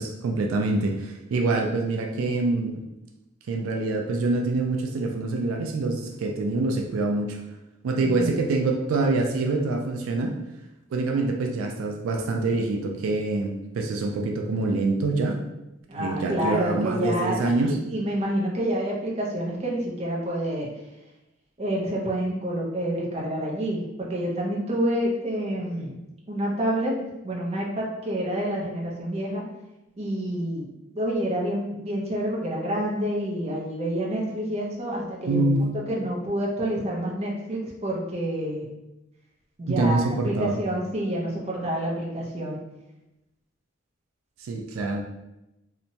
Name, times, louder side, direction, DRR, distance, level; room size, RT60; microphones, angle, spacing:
voice 1, 0.0-2.8 3.5-7.4 7.8-10.4 10.9-15.4 16.0-17.8 35.3-35.7 39.7-40.6 44.4-45.0, right 2 dB, 85° right, 2 dB, 0.3 m, -25 dB
voice 2, 8.0-8.5 15.9-17.4 17.7-20.7 21.6-26.0 26.3-29.5 30.0-30.7 30.9-38.7 39.6-42.6, right 1 dB, 30° right, -3 dB, 0.6 m, -28 dB
2.8 x 2.1 x 2.6 m, 0.93 s
head